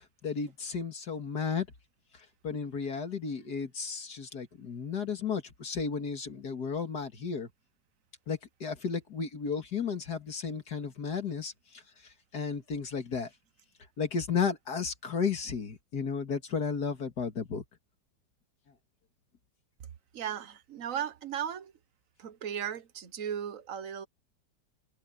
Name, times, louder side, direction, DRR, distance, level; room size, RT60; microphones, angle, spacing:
voice 1, 0.0-1.7 2.4-7.5 8.3-11.5 12.3-13.3 14.0-17.6, left 6 dB, 65° left, 2.5 m, -33 dB
voice 2, 20.1-21.7 22.2-24.1, right 9 dB, 50° right, 1.3 m, -36 dB
omnidirectional pair, 1.9 m